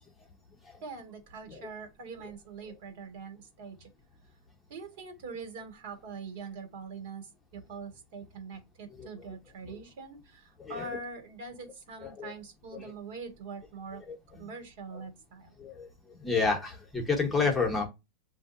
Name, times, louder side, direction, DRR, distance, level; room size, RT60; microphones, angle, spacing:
voice 1, 0.8-3.9 4.7-14.0 14.4-15.5, right 4 dB, 65° right, 1.6 m, -43 dB
voice 2, 16.2-17.9, left 4 dB, 10° left, 0.9 m, -29 dB
7.1 x 2.6 x 2.5 m
supercardioid pair, 155°, 0 cm